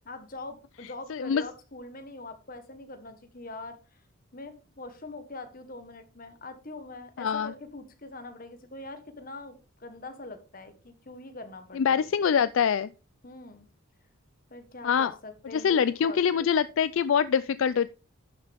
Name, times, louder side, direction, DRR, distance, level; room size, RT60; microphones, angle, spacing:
voice 1, 0.0-4.0 4.3-12.1 13.2-13.7 14.5-16.5, left 2 dB, 40° left, 9 dB, 1.4 m, -43 dB
voice 2, 1.1-1.4 7.2-7.5 11.7-12.9 14.8-15.1 15.5-17.9, left 7 dB, 65° left, 16 dB, 0.4 m, -24 dB
11.5 x 6.7 x 3.5 m, 0.33 s
head